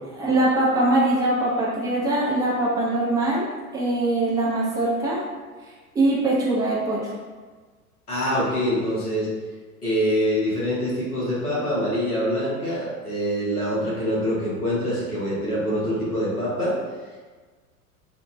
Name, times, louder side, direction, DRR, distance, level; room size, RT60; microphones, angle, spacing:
voice 1, 0.2-3.4 3.7-5.2 5.9-7.0, right 2 dB, 10° right, -5 dB, 0.3 m, -22 dB
voice 2, 8.1-9.3 9.8-16.7, equal, 90° left, -7 dB, 1.1 m, -25 dB
3.8 x 2.1 x 2.5 m, 1.4 s
figure-of-eight pair, 85°, 44 cm